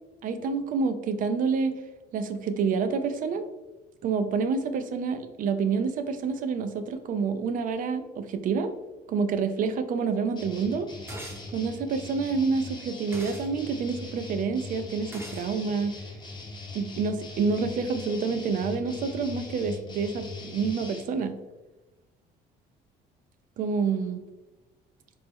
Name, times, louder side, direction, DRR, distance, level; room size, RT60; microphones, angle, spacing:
voice 1, 0.2-1.7 2.1-3.4 4.0-8.7 9.1-10.9 11.5-15.9 16.7-21.3 23.6-24.2, right 5 dB, 55° right, 10 dB, 0.4 m, -28 dB
sound 1, 10.4-21.0, left 3 dB, 25° left, 0.9 m, -41 dB
sound 2, 11.1-11.5 13.1-13.5 15.1-15.5, right 1 dB, 15° right, 0.7 m, -40 dB
4.4 x 2.0 x 3.4 m, 1.1 s
cardioid pair, 110°, 17 cm